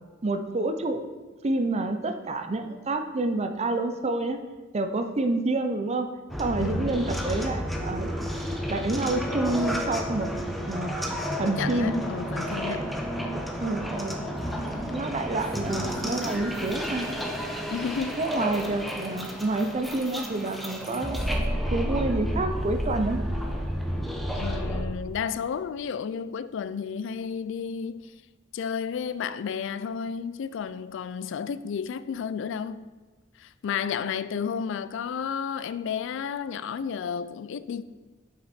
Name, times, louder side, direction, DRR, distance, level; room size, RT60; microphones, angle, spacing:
voice 1, 0.2-1.1 1.4-4.4 4.7-6.1 6.4-8.3 8.7-10.3 10.7-11.0 11.4-12.0 12.7-12.8 13.6-14.2 14.9-17.1 18.2-21.2 21.7-23.2, right 2 dB, 35° right, 0.5 m, -28 dB
sound 1, 6.3-24.8, equal, ahead, 0.7 m, -31 dB
voice 2, 11.4-13.0 17.7-18.2 24.3-28.1 28.5-32.9 33.4-37.8, left 7 dB, 65° left, 0.3 m, -32 dB
7.9 x 5.9 x 4.3 m
head